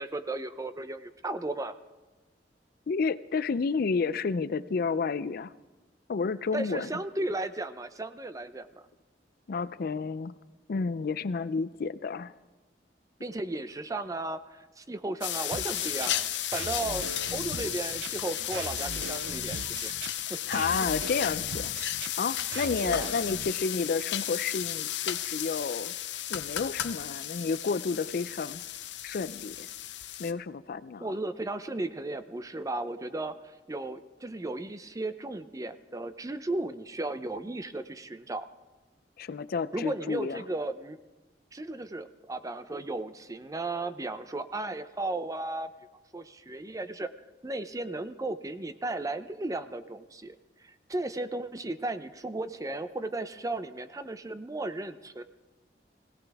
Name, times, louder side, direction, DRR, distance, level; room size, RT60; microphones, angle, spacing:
voice 1, 0.0-1.7 6.5-8.8 13.2-17.0 17.3-19.9 20.3-20.4 22.8-23.1 31.0-38.5 39.7-41.0 41.5-45.7 46.1-47.1 47.4-50.3 50.6-55.2, right 2 dB, 20° right, 11 dB, 0.5 m, -35 dB
voice 2, 2.9-5.5 6.1-6.9 9.5-10.3 10.7-12.3 20.5-21.7 22.2-25.9 26.3-28.6 29.0-29.7 30.2-31.1 39.2-40.4, left 5 dB, 55° left, 16 dB, 0.4 m, -31 dB
sound 1, 15.2-30.3, left 12 dB, 90° left, 0.7 m, -34 dB
sound 2, 15.5-23.5, right 4 dB, 80° right, 0.6 m, -40 dB
21.5 x 16.5 x 3.5 m, 1.2 s
head